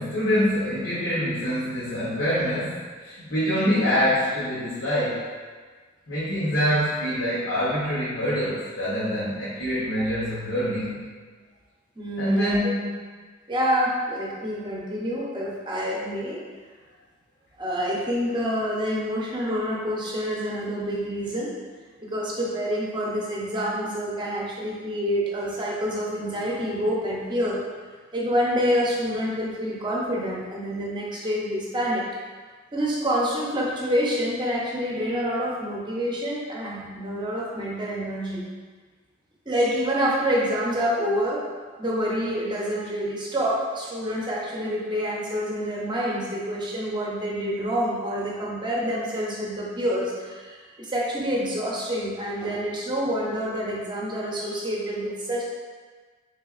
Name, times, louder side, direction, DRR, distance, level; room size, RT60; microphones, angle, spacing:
voice 1, 0.0-5.3 6.1-11.0 12.2-13.0, equal, 75° left, -9 dB, 0.8 m, -25 dB
voice 2, 12.0-12.7 13.5-16.4 17.6-21.5 22.0-27.6 28.1-32.0 32.7-38.4 39.5-41.4 41.8-55.4, equal, 25° right, -4 dB, 0.7 m, -27 dB
3.9 x 3.3 x 2.4 m, 1.5 s
head